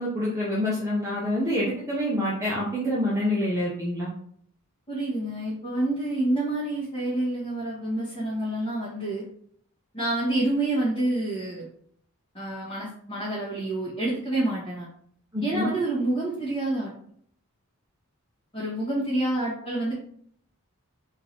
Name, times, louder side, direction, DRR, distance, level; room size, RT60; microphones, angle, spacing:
voice 1, 0.0-4.1 15.3-15.7, left 1 dB, 15° right, -7 dB, 0.8 m, -26 dB
voice 2, 4.9-9.2 9.9-11.6 12.3-14.9 15.4-16.9 18.5-19.9, right 2 dB, 25° left, -10 dB, 1.4 m, -28 dB
3.7 x 2.7 x 4.4 m, 0.63 s
head